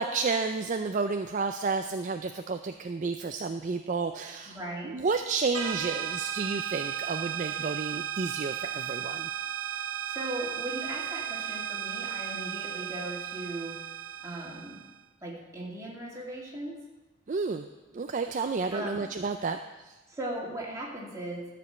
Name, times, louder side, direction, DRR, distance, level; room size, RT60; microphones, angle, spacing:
voice 1, 0.0-4.6 4.8-9.3 17.3-17.7 17.9-19.6 19.8-20.0, right 4 dB, 35° right, 7 dB, 0.4 m, -31 dB
voice 2, 4.5-4.9 10.1-13.8 14.2-14.8 15.2-16.8 18.7-19.1 20.1-21.4, right 1 dB, 15° right, -4 dB, 2.4 m, -38 dB
sound 1, 5.5-14.9, right 9 dB, 85° right, 1.2 m, -35 dB
13.0 x 5.1 x 8.0 m, 1.2 s
head